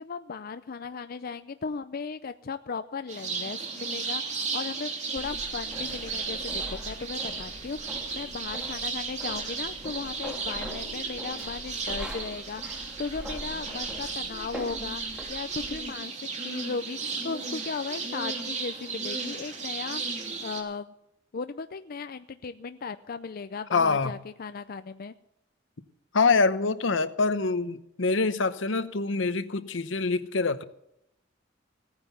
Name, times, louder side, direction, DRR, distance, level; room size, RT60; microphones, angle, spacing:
voice 1, 0.0-16.1 16.4-20.9 21.3-25.1, left 5 dB, 50° left, 0.5 m, -36 dB
sound 1, 3.1-20.6, right 4 dB, 40° right, 2.9 m, -35 dB
sound 2, 5.2-15.8, equal, 5° right, 2.3 m, -43 dB
voice 2, 23.7-24.1 26.1-30.6, left 4 dB, 75° left, 0.9 m, -25 dB
17.0 x 9.6 x 7.0 m
head